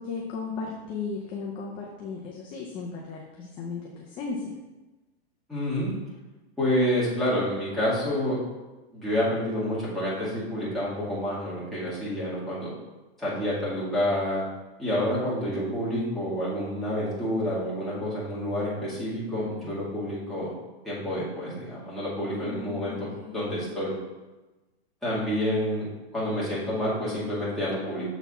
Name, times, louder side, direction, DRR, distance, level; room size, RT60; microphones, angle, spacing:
voice 1, 0.0-3.8 4.2-4.5 22.5-23.7, left 4 dB, 15° left, -2 dB, 0.4 m, -36 dB
voice 2, 5.5-5.9 6.6-8.4 8.9-12.7 13.2-14.4 14.8-20.5 20.8-23.9 25.0-25.9 26.1-28.0, equal, ahead, -11 dB, 2.2 m, -28 dB
6.9 x 4.0 x 4.2 m, 1.1 s
supercardioid pair, 155°, 31 cm